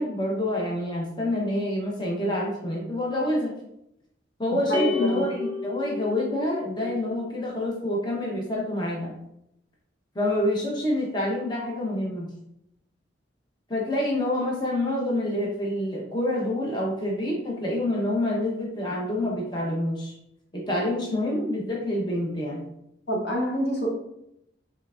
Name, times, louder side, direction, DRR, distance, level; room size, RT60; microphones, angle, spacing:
voice 1, 0.0-3.5 4.4-9.1 10.1-12.3 13.7-20.1 20.5-22.7, left 1 dB, 20° left, -3 dB, 0.8 m, -27 dB
voice 2, 4.7-5.3 23.1-23.9, equal, 55° left, 0 dB, 0.9 m, -27 dB
sound 1, 4.7-7.2, left 5 dB, 20° right, 0.6 m, -32 dB
5.6 x 3.3 x 2.4 m, 0.80 s
head